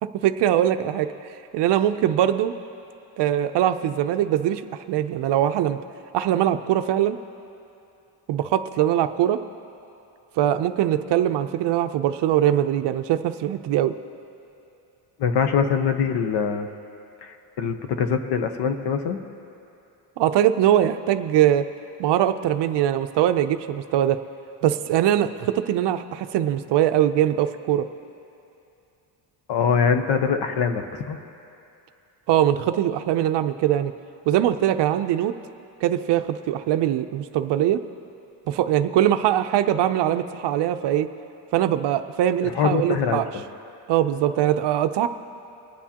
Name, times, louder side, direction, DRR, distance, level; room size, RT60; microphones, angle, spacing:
voice 1, 0.2-1.1 1.5-2.5 3.2-4.6 4.9-5.8 6.1-7.2 8.3-9.4 10.4-13.9 20.2-21.6 22.0-24.2 24.6-27.9 32.3-33.9 34.3-35.4 35.8-37.8 38.5-41.1 41.5-43.3 43.9-45.1, right 11 dB, 60° right, 9 dB, 0.6 m, -22 dB
voice 2, 15.2-16.7 17.2-19.2 29.5-31.2 42.4-43.4, left 6 dB, 55° left, 8 dB, 0.9 m, -23 dB
23.0 x 9.5 x 2.9 m, 2.8 s
cardioid pair, 140°, 48 cm